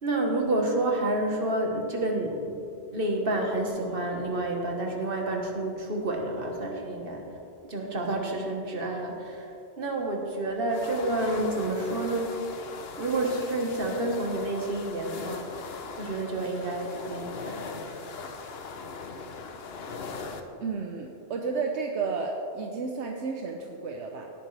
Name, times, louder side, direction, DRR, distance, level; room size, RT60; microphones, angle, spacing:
voice 1, 0.0-2.6 2.9-7.3 7.6-12.4 13.0-15.4 16.0-17.7, right 2 dB, 55° right, 1 dB, 1.7 m, -29 dB
sound 1, 10.7-20.4, left 4 dB, 65° left, 1.0 m, -40 dB
voice 2, 20.6-24.3, right 4 dB, 75° right, 2 dB, 1.1 m, -32 dB
17.5 x 9.0 x 3.4 m, 2.7 s
omnidirectional pair, 1.1 m